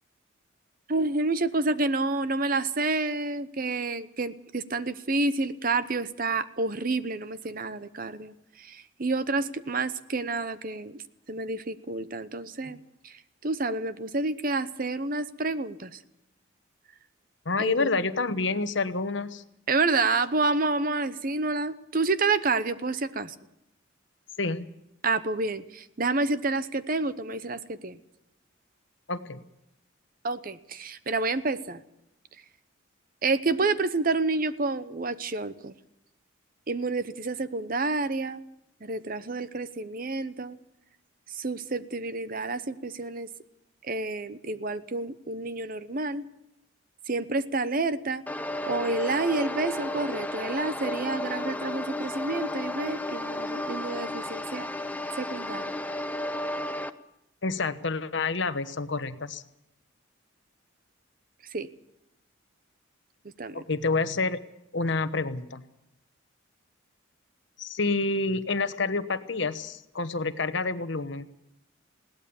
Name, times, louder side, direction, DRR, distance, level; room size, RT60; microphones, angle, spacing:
voice 1, 0.9-11.0 11.3-16.0 17.6-17.9 19.7-23.3 25.0-28.0 30.2-31.8 33.2-35.7 36.7-38.4 38.8-40.6 41.3-43.3 43.8-46.2 47.1-48.2 48.7-54.7 55.2-55.7 61.5-61.7 63.4-63.6, right 3 dB, 45° right, 13 dB, 0.8 m, -29 dB
voice 2, 17.4-19.4 24.4-24.7 29.1-29.4 57.4-59.4 63.5-64.4 64.7-65.6 67.6-71.3, left 3 dB, 65° left, 11 dB, 1.1 m, -28 dB
sound 1, 48.3-56.9, left 1 dB, 10° left, 0.7 m, -33 dB
21.0 x 17.5 x 7.1 m, 0.85 s
head